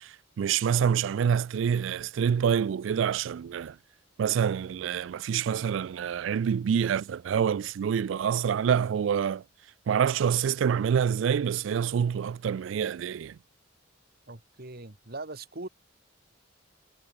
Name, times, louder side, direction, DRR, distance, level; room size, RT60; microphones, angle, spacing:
voice 1, 0.0-3.8 4.2-9.4 9.9-13.4, right 7 dB, 70° right, 0.3 m, -27 dB
voice 2, 14.3-15.7, right 2 dB, 50° right, 1.9 m, -40 dB
head